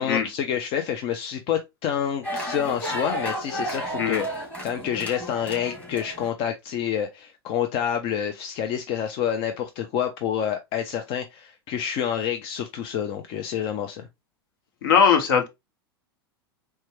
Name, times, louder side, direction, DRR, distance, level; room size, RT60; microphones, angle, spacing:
voice 1, 0.0-4.3 4.6-14.1, left 9 dB, 40° left, 0.5 m, -28 dB
sound 1, 2.2-6.3, equal, 10° left, 2.0 m, -32 dB
voice 2, 14.8-15.5, left 7 dB, 60° left, 1.0 m, -20 dB
4.3 x 2.2 x 3.1 m
hypercardioid pair, 95°, 13 cm